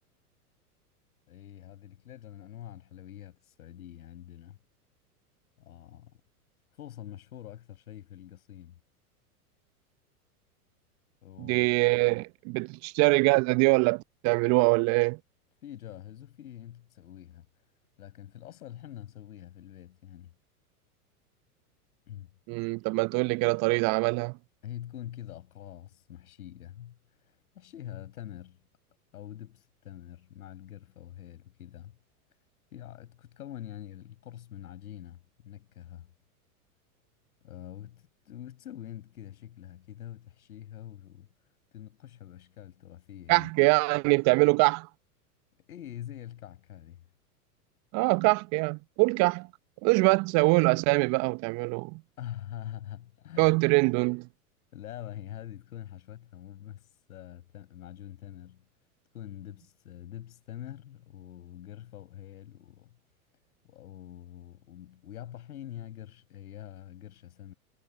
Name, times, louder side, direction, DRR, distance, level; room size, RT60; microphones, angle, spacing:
voice 1, 1.3-4.6 5.6-6.2 6.8-8.8 11.2-11.7 15.6-17.5 18.0-20.3 22.1-22.3 24.6-27.0 27.2-28.6 29.1-32.0 32.7-36.1 37.4-41.3 41.7-43.5 45.7-47.0 52.2-53.6 54.7-58.6 59.1-63.0 63.6-67.5, left 11 dB, 70° left, 6.2 m, -45 dB
voice 2, 11.4-15.2 22.5-24.4 43.3-44.9 47.9-49.5 49.8-52.0 53.4-54.3, right 27 dB, 35° right, 0.7 m, -24 dB
hypercardioid pair, 100°, 45 cm